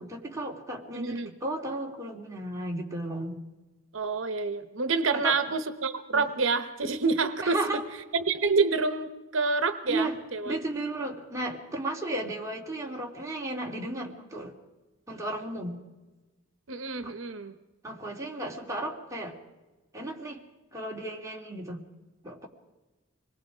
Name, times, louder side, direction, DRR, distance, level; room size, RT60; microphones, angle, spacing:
voice 1, 0.0-3.4 5.1-5.4 6.1-6.3 7.4-7.8 9.9-10.2 10.4-14.5 15.1-15.8 17.0-17.1 17.8-19.4 19.9-20.4 20.7-21.8 22.2-22.5, right 1 dB, 15° right, -1 dB, 2.9 m, -34 dB
voice 2, 0.9-1.3 3.9-7.8 8.1-10.6 16.7-17.5, right 4 dB, 75° right, 10 dB, 1.0 m, -28 dB
26.0 x 20.5 x 5.0 m, 1.2 s
head